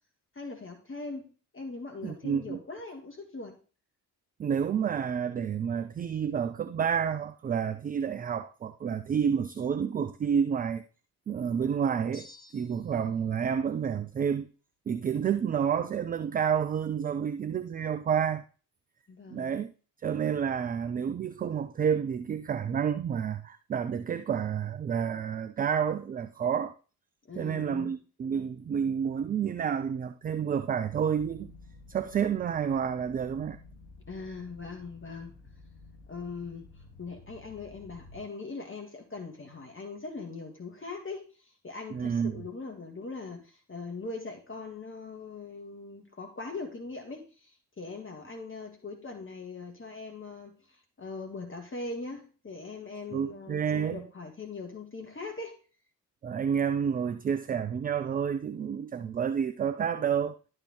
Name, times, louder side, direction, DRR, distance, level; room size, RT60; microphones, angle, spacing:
voice 1, 0.3-3.6 19.1-19.5 27.3-27.9 34.1-35.3 36.1-36.7 37.0-55.6, left 3 dB, 25° left, 1.9 m, -41 dB
voice 2, 2.0-2.6 4.4-10.8 11.3-12.3 12.5-14.5 14.9-18.4 19.3-19.7 20.0-26.7 27.4-31.5 31.9-33.6 41.9-42.4 53.1-54.0 56.2-60.3, right 7 dB, 20° right, 0.4 m, -29 dB
sound 1, 12.1-13.1, left 2 dB, 50° left, 3.1 m, -52 dB
sound 2, 31.2-38.2, left 3 dB, 80° left, 1.3 m, -52 dB
11.5 x 4.5 x 3.2 m
figure-of-eight pair, 45°, 48 cm